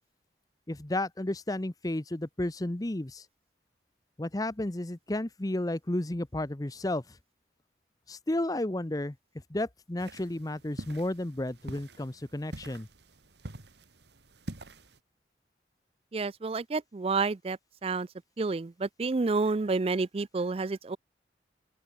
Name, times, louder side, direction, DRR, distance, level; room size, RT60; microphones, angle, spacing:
voice 1, 0.7-3.2 4.2-7.0 8.1-9.2 9.5-12.9, left 1 dB, 20° left, 0.8 m, -32 dB
sound 1, 10.0-15.0, right 1 dB, 70° right, 2.2 m, -46 dB
voice 2, 16.1-18.1 18.4-21.0, right 3 dB, 35° right, 0.4 m, -29 dB
open air
head